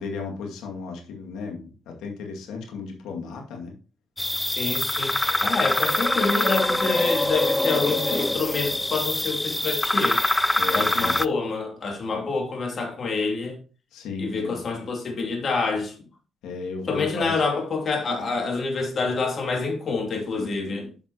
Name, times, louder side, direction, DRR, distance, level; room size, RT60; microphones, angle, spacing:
voice 1, 0.0-3.7 10.6-11.1 13.9-14.6 16.4-17.4, left 4 dB, 90° left, 2.1 m, -34 dB
sound 1, 4.2-11.3, left 1 dB, 10° left, 0.4 m, -24 dB
voice 2, 4.5-10.2 10.7-13.6 14.2-16.0 16.9-20.9, left 4 dB, 50° left, 2.7 m, -27 dB
10.0 x 5.8 x 2.9 m
cardioid pair, 90°, 0 cm